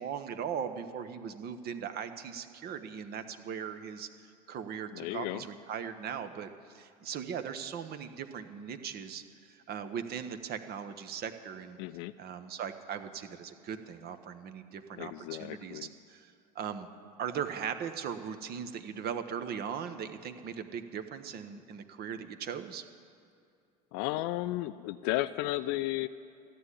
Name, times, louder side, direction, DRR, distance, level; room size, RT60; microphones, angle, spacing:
voice 1, 0.0-11.8 12.2-16.9 17.2-22.8, right 7 dB, 50° right, 9 dB, 1.1 m, -39 dB
voice 2, 4.9-5.4 11.8-12.1 15.0-15.9 23.9-26.1, left 16 dB, 60° left, 12 dB, 0.5 m, -34 dB
14.0 x 8.5 x 9.9 m, 2.5 s
hypercardioid pair, 75°, 21 cm